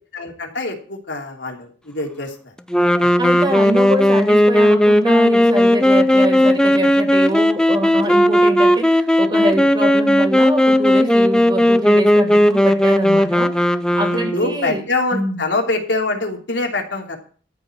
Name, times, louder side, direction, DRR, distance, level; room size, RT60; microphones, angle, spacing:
voice 1, 0.1-2.5 3.0-3.1 14.3-17.2, left 2 dB, 80° left, 1 dB, 3.1 m, -24 dB
sound 1, 2.7-14.6, left 1 dB, 5° left, 0.5 m, -15 dB
voice 2, 3.2-14.8 15.1-15.4, right 1 dB, 25° right, 3 dB, 2.8 m, -24 dB
14.0 x 4.8 x 9.0 m, 0.41 s
head